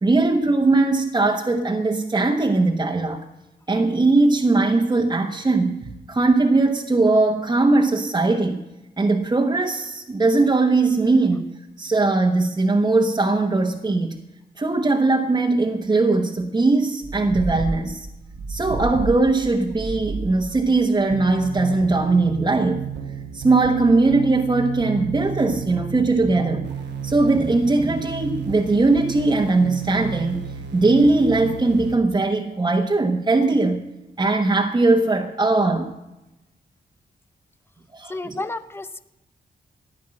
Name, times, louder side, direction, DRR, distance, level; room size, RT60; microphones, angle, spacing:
voice 1, 0.0-3.2 3.7-8.6 9.0-11.5 11.8-14.2 14.6-18.1 18.5-22.8 23.3-26.7 27.0-33.8 34.2-35.9 37.9-38.3, right 3 dB, 25° right, 1 dB, 1.1 m, -20 dB
sound 1, 17.0-32.0, right 5 dB, 85° right, 1.3 m, -32 dB
voice 2, 38.1-39.0, left 2 dB, 15° left, 13 dB, 0.7 m, -31 dB
15.0 x 10.5 x 7.6 m, 0.99 s
wide cardioid pair, 125°, 17 cm